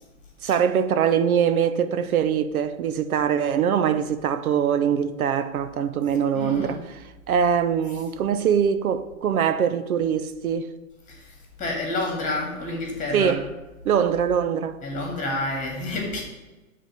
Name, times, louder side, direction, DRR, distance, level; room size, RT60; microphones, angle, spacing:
voice 1, 0.4-6.8 7.3-10.7 13.1-13.4 13.8-14.8, right 8 dB, 85° right, 0.7 m, -23 dB
voice 2, 6.3-6.8 11.1-11.3 11.6-13.3 14.8-16.2, left 2 dB, 20° left, 2.0 m, -29 dB
6.5 x 3.9 x 6.3 m
hypercardioid pair, 135°, 42 cm